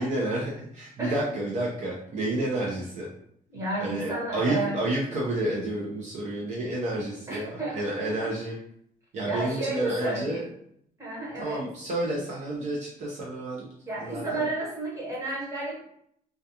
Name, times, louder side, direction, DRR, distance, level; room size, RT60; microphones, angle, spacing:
voice 1, 0.0-3.1 3.8-8.5 9.1-10.4 11.4-13.7 14.0-14.5, right 1 dB, 50° right, -4 dB, 0.5 m, -30 dB
voice 2, 3.5-4.7 7.3-8.3 9.2-10.4 11.0-11.7 13.9-15.8, right 2 dB, 20° right, -5 dB, 0.9 m, -32 dB
2.3 x 2.3 x 2.7 m, 0.69 s
cardioid pair, 175°, 15 cm